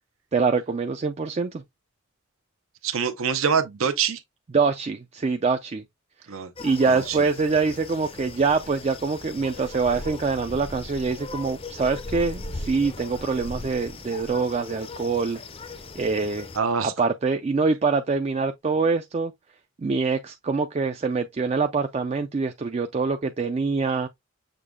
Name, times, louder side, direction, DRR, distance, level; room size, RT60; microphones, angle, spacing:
voice 1, 0.3-1.6 4.5-5.8 6.6-15.4 16.0-16.5 16.8-19.3 19.8-24.1, right 4 dB, 30° right, 0.3 m, -24 dB
voice 2, 2.8-4.2 6.3-6.5 6.9-7.2 16.6-16.9, right 6 dB, 80° right, 0.7 m, -25 dB
sound 1, 6.6-16.6, left 3 dB, 25° left, 0.5 m, -38 dB
6.6 x 2.2 x 3.6 m
head